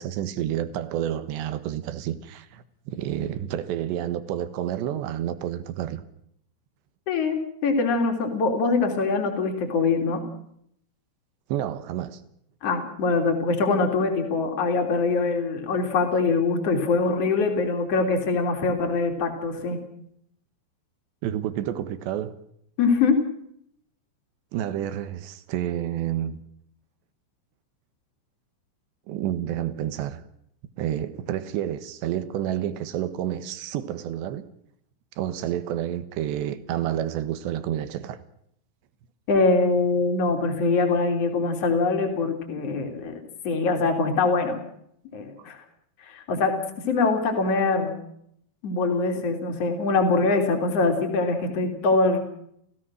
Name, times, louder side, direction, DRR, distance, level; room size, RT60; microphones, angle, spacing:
voice 1, 0.0-6.0 11.5-12.2 21.2-22.3 24.5-26.4 29.1-30.2 30.8-34.5 35.2-38.2 45.4-45.5, right 11 dB, 70° right, 3.1 m, -29 dB
voice 2, 7.1-10.2 12.6-19.8 22.8-23.2 39.3-44.6 45.1-45.6 46.1-46.5 46.9-48.0 48.6-52.2, left 4 dB, 35° left, 3.5 m, -23 dB
29.5 x 16.5 x 6.3 m
omnidirectional pair, 5.9 m